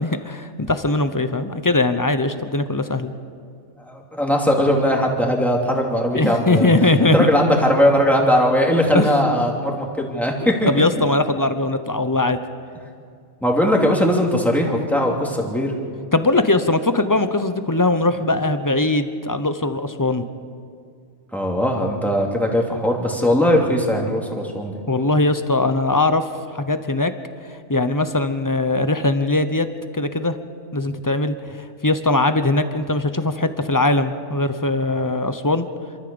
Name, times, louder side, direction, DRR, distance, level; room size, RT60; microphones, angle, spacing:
voice 1, 0.0-3.1 6.1-7.3 8.9-9.1 10.4-12.4 16.1-20.2 24.9-26.3 26.5-27.1 27.7-29.7 29.9-30.4 30.7-35.7, left 2 dB, 20° left, 10 dB, 0.7 m, -20 dB
voice 2, 3.8-6.7 7.0-10.7 13.4-15.7 21.3-24.8, equal, ahead, -1 dB, 2.8 m, -19 dB
27.5 x 13.5 x 7.1 m, 2.3 s
omnidirectional pair, 1.4 m